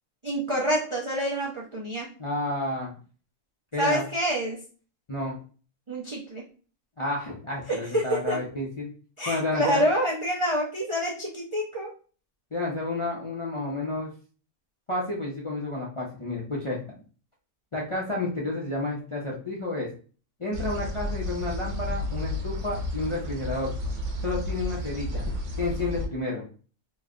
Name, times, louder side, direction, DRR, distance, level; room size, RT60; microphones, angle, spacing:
voice 1, 0.2-2.2 3.8-4.6 5.9-6.4 7.7-8.4 9.2-11.9, equal, 45° right, -4 dB, 0.4 m, -27 dB
voice 2, 2.2-2.9 3.7-4.0 5.1-5.3 7.0-8.9 9.3-9.8 12.5-14.1 14.9-16.8 17.7-19.9 20.4-23.7 24.2-25.3 25.6-26.4, left 2 dB, 35° left, -5 dB, 0.5 m, -30 dB
sound 1, 20.5-26.0, left 1 dB, 60° right, 1.1 m, -32 dB
3.1 x 2.1 x 3.6 m, 0.38 s
omnidirectional pair, 1.5 m